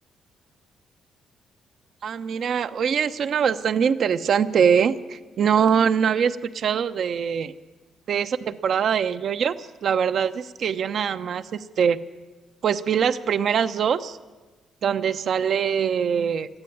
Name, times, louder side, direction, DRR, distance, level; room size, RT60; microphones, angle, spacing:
voice 1, 2.0-7.5 8.1-12.0 12.6-14.2 14.8-16.5, right 7 dB, 60° right, 12 dB, 0.9 m, -23 dB
20.5 x 14.0 x 9.4 m, 1.2 s
cardioid pair, 90°, 0 cm